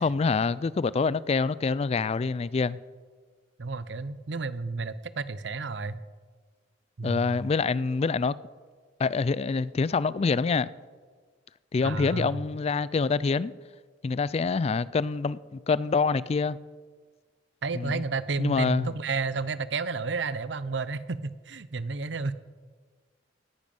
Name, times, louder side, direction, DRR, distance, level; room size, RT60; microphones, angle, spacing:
voice 1, 0.0-2.8 7.0-8.3 9.0-10.7 11.7-13.5 14.0-16.6 17.7-18.0 18.4-18.9, left 4 dB, 35° left, 0.3 m, -26 dB
voice 2, 3.6-6.0 7.0-7.3 11.8-12.4 17.6-22.3, right 4 dB, 70° right, 0.7 m, -31 dB
18.0 x 10.5 x 5.4 m
head